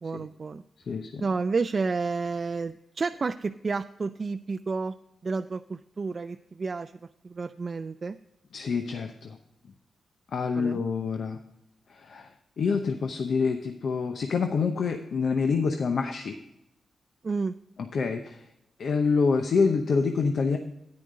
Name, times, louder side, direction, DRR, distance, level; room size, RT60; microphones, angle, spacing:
voice 1, 0.0-0.6 1.2-5.0 5.2-6.9 7.2-8.2 10.6-10.8 17.2-17.5, right 4 dB, 45° right, 8 dB, 0.3 m, -30 dB
voice 2, 0.9-1.2 8.5-9.4 10.3-11.4 12.0-12.3 12.6-16.4 17.9-18.4 18.8-20.6, left 5 dB, 70° left, 6 dB, 0.7 m, -26 dB
10.0 x 9.7 x 3.8 m, 0.84 s
cardioid pair, 75°, 0 cm